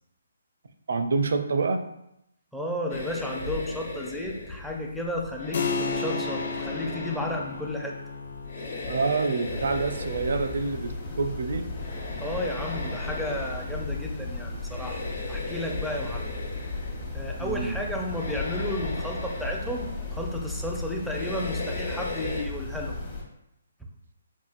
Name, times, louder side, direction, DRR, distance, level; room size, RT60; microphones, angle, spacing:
voice 1, 0.9-1.8 8.9-11.7 17.4-17.8, right 4 dB, 65° right, 7 dB, 0.4 m, -27 dB
voice 2, 2.5-8.0 12.2-15.0 15.3-16.3 17.1-23.0, left 1 dB, ahead, -1 dB, 0.5 m, -33 dB
sound 1, 2.9-22.4, left 3 dB, 70° left, 1.1 m, -38 dB
Keyboard (musical), 5.5-15.7, left 4 dB, 50° left, 0.5 m, -37 dB
sound 2, 9.5-23.2, left 2 dB, 35° left, 1.0 m, -36 dB
5.5 x 2.4 x 2.4 m, 0.81 s
figure-of-eight pair, 140°, 0 cm